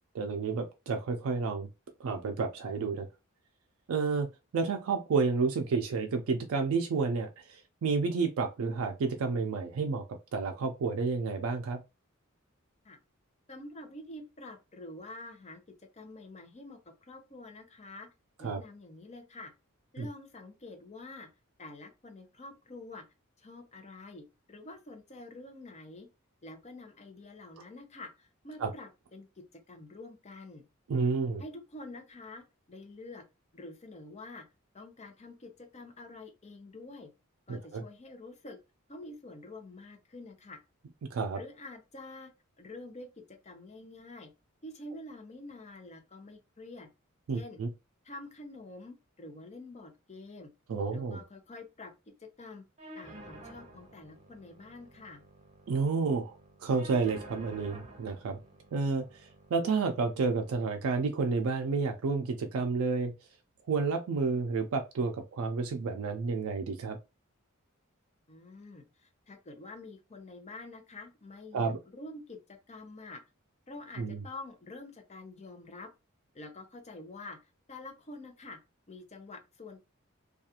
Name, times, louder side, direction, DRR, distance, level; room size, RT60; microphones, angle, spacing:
voice 1, 0.1-1.7 2.0-3.1 3.9-4.3 4.5-10.0 10.3-11.8 18.4-18.6 20.0-20.1 28.6-28.7 30.9-31.4 37.5-37.8 41.1-41.4 47.3-47.7 50.7-51.2 55.7-58.4 58.7-63.1 63.7-67.0 71.5-71.8 74.0-74.2, right 4 dB, 85° right, 0.4 m, -30 dB
voice 2, 13.5-15.6 15.9-16.8 17.1-18.1 18.4-19.5 19.9-21.3 21.6-23.0 23.4-26.1 26.4-30.7 31.4-33.3 33.5-34.4 34.7-37.1 37.5-38.6 38.9-40.6 41.3-42.3 42.6-44.3 44.6-46.9 47.3-47.6 48.0-50.5 50.9-51.9 52.2-52.6 52.9-55.2 68.3-73.2 73.7-75.9 76.3-77.4 77.7-78.6 78.9-79.8, left 2 dB, 35° left, 0.6 m, -47 dB
sound 1, 52.8-60.8, right 1 dB, 35° right, 0.7 m, -51 dB
2.4 x 2.3 x 2.8 m
head